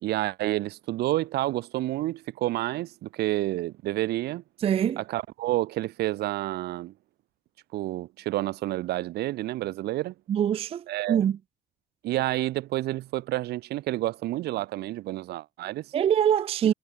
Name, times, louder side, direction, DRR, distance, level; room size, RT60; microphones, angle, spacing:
voice 1, 0.0-4.4 5.0-6.9 7.7-10.1 10.9-11.2 12.0-15.9, right 16 dB, 75° right, 1.0 m, -29 dB
voice 2, 4.6-5.0 10.3-11.4 15.9-16.7, right 9 dB, 35° right, 0.4 m, -24 dB
cardioid pair, 110°, 17 cm